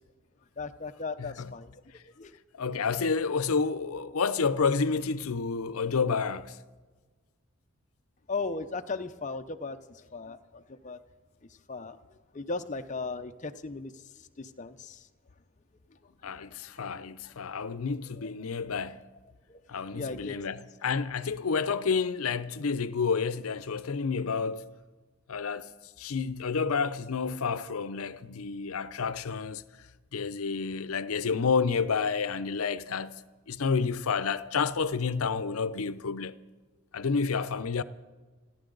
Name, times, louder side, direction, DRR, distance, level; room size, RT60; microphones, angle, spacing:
voice 1, 0.6-1.7 2.2-2.3 8.3-11.0 11.7-12.0 12.3-15.1 16.4-17.0 18.2-18.3 19.5-20.4, left 3 dB, 35° left, 0.7 m, -37 dB
voice 2, 1.2-1.5 2.5-6.6 16.2-19.1 19.7-24.7 25.3-25.7 26.0-29.6 30.1-33.2 33.5-36.4 36.9-37.8, left 5 dB, 85° left, 0.6 m, -30 dB
30.0 x 10.5 x 3.9 m
head